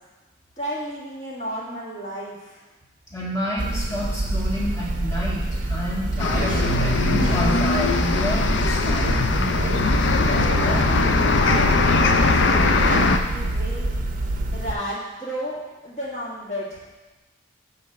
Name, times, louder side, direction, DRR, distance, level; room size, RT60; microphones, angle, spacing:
voice 1, 0.6-2.6 9.9-13.9 14.5-16.9, equal, 35° left, -6 dB, 2.2 m, -33 dB
voice 2, 3.1-6.7 7.0-9.3, equal, 15° left, -5 dB, 1.7 m, -28 dB
sound 1, 3.6-14.7, right 1 dB, 45° right, 0.6 m, -26 dB
sound 2, 6.2-13.2, left 3 dB, 65° left, 0.5 m, -21 dB
7.8 x 4.3 x 6.7 m, 1.1 s
head